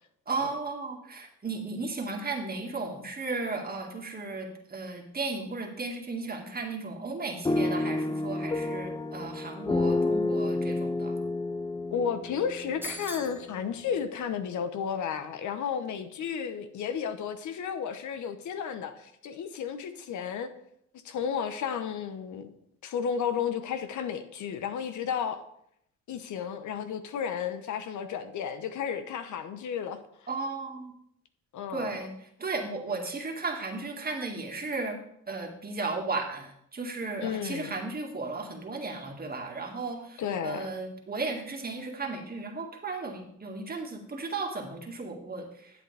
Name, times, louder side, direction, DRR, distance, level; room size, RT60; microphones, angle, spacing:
voice 1, 0.3-11.1 30.3-30.9 31.7-32.1 32.4-35.0 35.3-45.7, right 3 dB, 30° right, 2.0 m, -35 dB
sound 1, 7.5-13.5, left 2 dB, 15° left, 0.5 m, -30 dB
voice 2, 11.9-20.5 21.0-22.5 22.8-25.4 26.1-30.3 31.5-32.1 37.2-37.7 40.2-40.7, left 7 dB, 70° left, 1.0 m, -33 dB
sound 2, 12.8-13.4, right 1 dB, 5° right, 0.9 m, -39 dB
10.5 x 8.0 x 3.4 m
cardioid pair, 85°, 31 cm